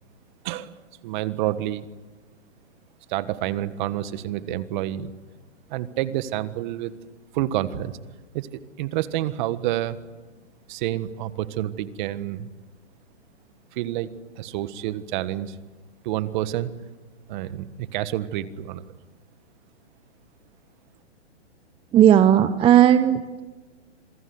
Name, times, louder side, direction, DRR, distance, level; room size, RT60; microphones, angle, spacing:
voice 1, 1.0-1.9 3.1-5.1 5.7-6.9 7.3-8.0 8.3-8.5 8.8-10.0 10.7-12.5 13.7-15.6 16.0-16.7 17.3-18.8, right 13 dB, 40° right, 14 dB, 1.6 m, -28 dB
voice 2, 21.9-23.4, right 10 dB, 15° right, 12 dB, 0.8 m, -16 dB
27.0 x 22.5 x 9.6 m, 1.2 s
hypercardioid pair, 135°, 35 cm